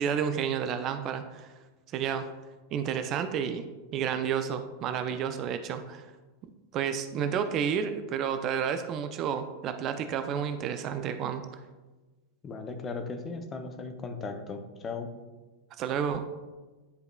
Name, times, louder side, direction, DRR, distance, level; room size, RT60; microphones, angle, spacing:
voice 1, 0.0-1.5 1.9-2.3 2.7-3.7 3.9-6.1 6.7-11.4 15.8-16.2, right 8 dB, 35° right, 9 dB, 0.4 m, -30 dB
voice 2, 12.4-15.1, left 4 dB, 25° left, 6 dB, 0.7 m, -37 dB
10.0 x 4.7 x 2.3 m, 1.2 s
figure-of-eight pair, 90°, 0 cm